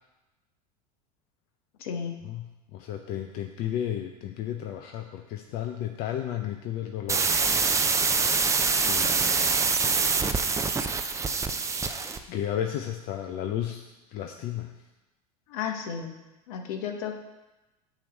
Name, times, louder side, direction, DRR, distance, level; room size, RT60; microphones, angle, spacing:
voice 1, 1.8-2.2 15.5-16.2 16.5-17.2, left 7 dB, 65° left, 4 dB, 1.0 m, -33 dB
voice 2, 2.7-7.3 8.8-10.3 11.6-14.7, left 10 dB, 50° left, 5 dB, 0.5 m, -34 dB
sound 1, 7.1-12.2, right 4 dB, 15° right, 0.5 m, -25 dB
8.7 x 3.1 x 6.4 m, 1.1 s
hypercardioid pair, 80°, 20 cm